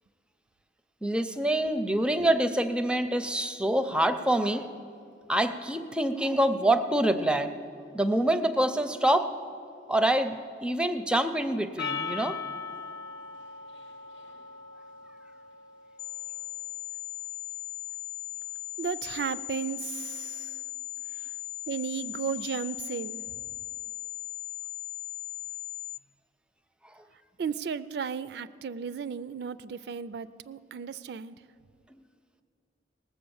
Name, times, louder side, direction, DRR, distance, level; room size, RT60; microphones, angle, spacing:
voice 1, 1.0-4.7 5.3-7.5 7.9-9.3 9.9-12.4 26.9-27.0, right 1 dB, 5° right, 10 dB, 0.5 m, -26 dB
Percussion, 11.8-16.3, left 5 dB, 85° left, 0.9 m, -39 dB
sound 1, 16.0-26.0, left 14 dB, 60° left, 0.3 m, -38 dB
voice 2, 18.8-20.6 21.1-21.3 21.7-23.4 27.4-31.4, right 6 dB, 60° right, 16 dB, 0.3 m, -35 dB
19.0 x 7.4 x 7.0 m, 2.5 s
head